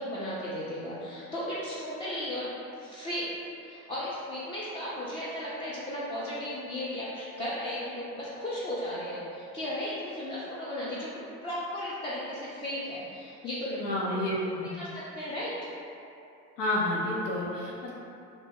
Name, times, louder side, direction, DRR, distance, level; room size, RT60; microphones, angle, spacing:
voice 1, 0.0-2.5 2.8-3.3 3.6-11.1 11.4-14.3 14.6-15.6, left 1 dB, 15° left, -10 dB, 0.4 m, -35 dB
voice 2, 13.8-14.7 16.6-17.9, left 1 dB, 90° left, -4 dB, 0.6 m, -30 dB
2.9 x 2.0 x 3.4 m, 2.7 s
hypercardioid pair, 70°, 46 cm